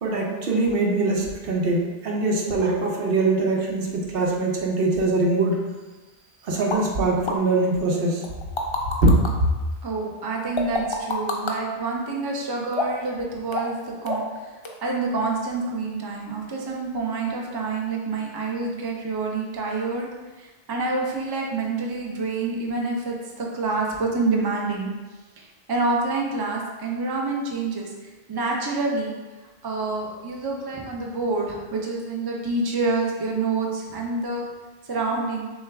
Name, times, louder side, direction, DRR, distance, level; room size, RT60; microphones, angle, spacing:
voice 1, 0.0-5.6 6.4-8.2 9.0-9.1, right 2 dB, 65° right, -1 dB, 0.9 m, -22 dB
sound 1, 6.7-6.8 7.3-7.4 8.2-9.3 10.6-11.6 12.7-13.1 13.5-13.8 14.1-14.4 14.6-14.7, left 3 dB, 45° left, 0.4 m, -27 dB
voice 2, 9.8-20.1 20.4-24.9 25.4-29.1 29.6-34.5 34.8-35.5, right 3 dB, 30° right, -1 dB, 0.5 m, -27 dB
6.2 x 2.3 x 3.4 m, 1.2 s
omnidirectional pair, 1.0 m